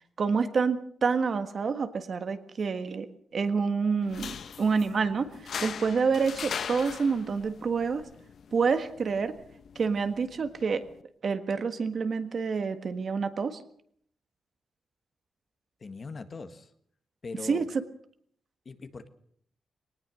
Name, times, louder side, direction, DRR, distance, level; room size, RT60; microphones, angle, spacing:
voice 1, 0.2-3.1 3.3-5.3 5.6-8.0 8.5-9.3 9.7-10.8 11.2-13.6 17.5-17.7, right 5 dB, 50° right, 9 dB, 1.6 m, -28 dB
sound 1, 4.0-11.0, left 7 dB, 65° left, 0.8 m, -41 dB
voice 2, 15.8-16.7 17.2-17.7 18.6-19.1, left 4 dB, 35° left, 9 dB, 1.6 m, -40 dB
21.5 x 19.0 x 6.4 m, 0.63 s
wide cardioid pair, 140°, 0 cm